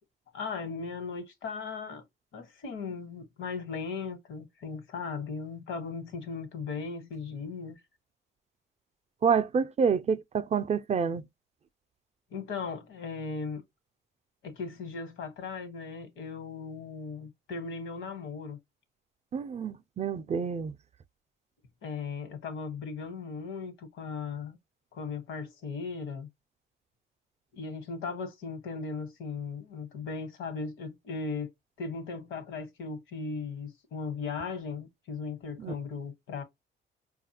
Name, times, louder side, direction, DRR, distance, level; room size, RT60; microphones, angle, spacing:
voice 1, 0.3-2.0 2.3-7.8 12.3-13.6 14.4-18.6 21.8-24.6 24.9-26.3 27.5-31.5 31.8-36.4, left 4 dB, 80° left, 1.2 m, -37 dB
voice 2, 9.2-11.2 19.3-20.7 35.6-35.7, right 6 dB, 35° right, 0.4 m, -28 dB
4.9 x 2.3 x 2.8 m
cardioid pair, 90°, 20 cm